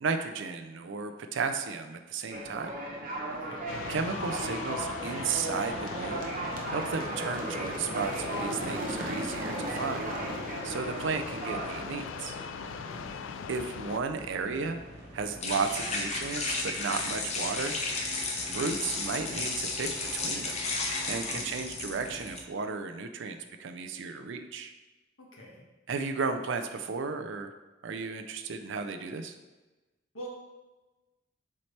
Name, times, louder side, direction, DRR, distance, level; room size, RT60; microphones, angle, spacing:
voice 1, 0.0-2.7 3.9-6.2 6.5-10.0 10.6-12.4 13.5-14.8 15.1-17.8 18.5-20.6 21.1-24.7 25.9-27.5 27.8-29.3, right 4 dB, 65° right, 7 dB, 0.5 m, -34 dB
sound 1, 2.3-21.2, right 2 dB, 45° right, 0.9 m, -38 dB
voice 2, 3.3-3.8 12.8-13.3 21.3-21.4 25.2-25.6 30.1-30.3, equal, 85° left, -3 dB, 1.6 m, -46 dB
sound 2, 3.7-14.0, left 7 dB, 65° left, 0.3 m, -41 dB
sound 3, 13.8-22.4, left 3 dB, 35° left, 0.9 m, -34 dB
7.3 x 4.3 x 3.2 m, 1.1 s
head